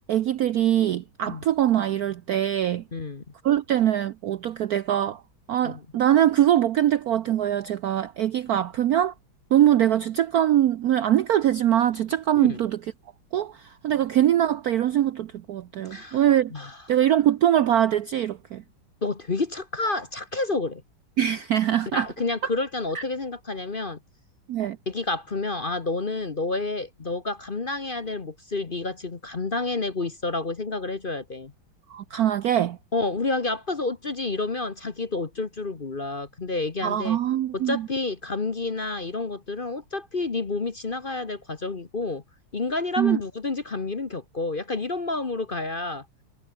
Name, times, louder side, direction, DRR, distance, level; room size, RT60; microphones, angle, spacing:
voice 1, 0.1-2.8 3.4-5.2 5.5-9.1 9.5-12.8 13.3-16.5 16.9-18.6 21.2-22.1 22.9-23.0 24.5-24.8 31.9-32.8 36.8-37.9 43.0-43.2, right 11 dB, 65° right, 0.9 m, -22 dB
voice 2, 2.9-3.2 5.6-5.8 12.3-12.6 15.9-16.2 16.5-16.8 19.0-20.8 21.9-24.0 24.9-31.5 32.9-37.2 37.5-42.2 42.5-46.0, left 3 dB, 30° left, 1.1 m, -29 dB
omnidirectional pair, 2.2 m